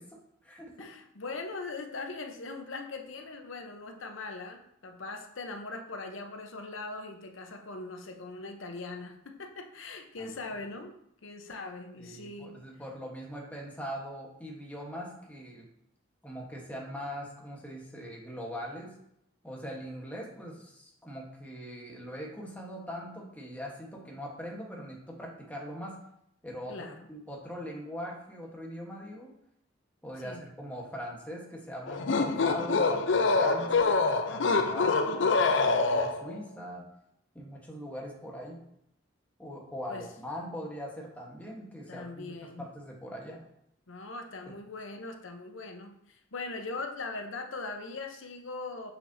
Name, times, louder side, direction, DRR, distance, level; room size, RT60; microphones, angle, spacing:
voice 1, 0.0-0.7 10.2-10.4 12.0-15.7 16.2-18.9 19.4-26.0 26.4-26.7 27.1-29.3 30.0-36.9 37.3-38.6 39.4-43.4, equal, 10° left, -2 dB, 1.2 m, -41 dB
voice 2, 0.8-10.9 11.2-12.6 26.7-27.1 30.2-30.5 39.9-40.1 41.9-42.7 43.9-48.9, left 3 dB, 85° left, 4 dB, 0.9 m, -40 dB
sound 1, 31.9-36.4, left 4 dB, 65° left, 0.5 m, -25 dB
6.8 x 5.8 x 2.7 m, 0.76 s
head